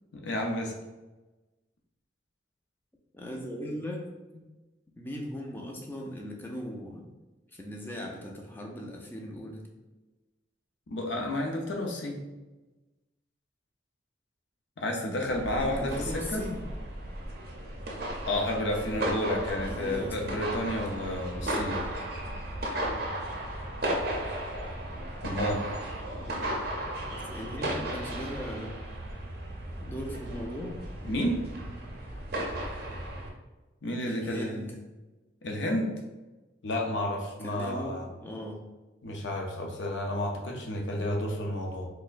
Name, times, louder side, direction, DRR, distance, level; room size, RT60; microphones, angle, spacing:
voice 1, 0.1-0.7 10.9-12.2 14.8-16.4 18.3-21.8 25.2-25.6 31.0-31.4 33.8-34.6 35.4-35.9 36.6-38.1 39.0-41.9, left 1 dB, 70° left, 1 dB, 0.6 m, -31 dB
voice 2, 3.1-4.4 5.0-7.1 7.5-9.7 15.6-16.7 19.5-21.0 26.1-26.5 27.1-28.8 29.6-30.8 34.1-34.8 37.4-38.6, equal, 10° left, 0 dB, 0.4 m, -39 dB
sound 1, 15.3-33.3, right 1 dB, 55° right, 0.5 m, -35 dB
4.2 x 2.1 x 2.5 m, 1.1 s
head